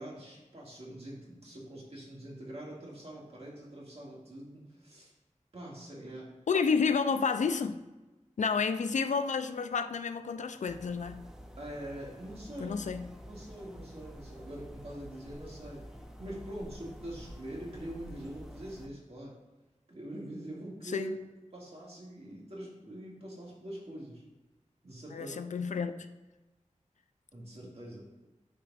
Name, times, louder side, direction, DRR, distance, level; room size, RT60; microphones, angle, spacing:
voice 1, 0.0-5.1 5.5-6.3 11.6-12.8 13.2-15.8 16.2-19.3 19.9-21.2 21.5-24.2 24.8-25.4 27.3-28.0, right 1 dB, 55° right, -4 dB, 1.9 m, -44 dB
voice 2, 6.5-7.8 8.4-11.2 12.6-13.1 20.9-21.1 25.1-26.1, left 5 dB, 75° left, 10 dB, 0.4 m, -30 dB
sound 1, 10.7-18.9, equal, 5° right, 0.6 m, -49 dB
9.3 x 4.6 x 2.4 m, 1.1 s
wide cardioid pair, 65°, 13 cm